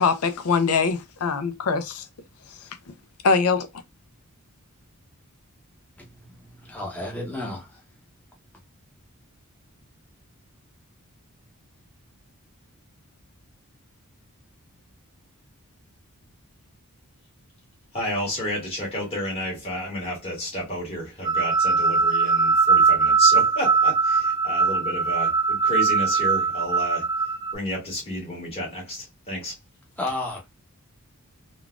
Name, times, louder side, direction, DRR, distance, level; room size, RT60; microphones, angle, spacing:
voice 1, 0.0-2.0 3.2-3.7, left 5 dB, 75° left, 0.5 m, -22 dB
voice 2, 6.0-7.8 30.0-30.5, left 2 dB, 5° left, 0.8 m, -33 dB
voice 3, 17.9-27.1 27.5-29.5, equal, 25° left, 1.7 m, -31 dB
sound 1, 21.2-27.5, right 5 dB, 20° right, 0.3 m, -21 dB
3.8 x 2.4 x 2.3 m
head